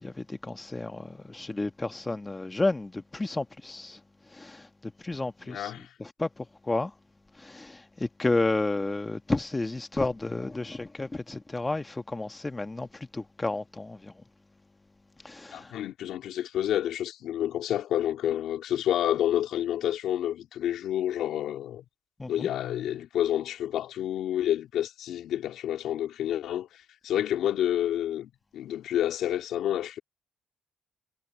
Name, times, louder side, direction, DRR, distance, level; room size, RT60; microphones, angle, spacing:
voice 1, 0.0-4.0 4.4-5.7 6.0-6.9 7.4-14.1 15.2-15.7 22.2-22.5, left 2 dB, 20° left, 1.6 m, -31 dB
voice 2, 5.4-5.9 15.5-21.8 22.3-30.0, left 11 dB, 80° left, 3.2 m, -29 dB
cardioid pair, 90°, 0 cm